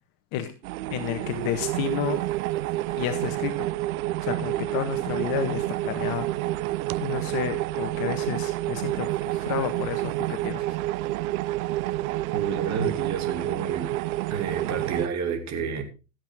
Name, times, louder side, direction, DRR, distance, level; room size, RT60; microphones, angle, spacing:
sound 1, 0.6-15.1, right 17 dB, 70° right, 0.6 m, -29 dB
voice 1, 0.9-2.2 3.0-3.7 4.2-6.3 7.0-10.8, left 10 dB, 50° left, 8 dB, 1.6 m, -31 dB
voice 2, 12.3-13.9 14.3-15.8, right 5 dB, 40° right, 7 dB, 2.9 m, -30 dB
15.0 x 8.2 x 3.7 m, 0.31 s
hypercardioid pair, 105°, 44 cm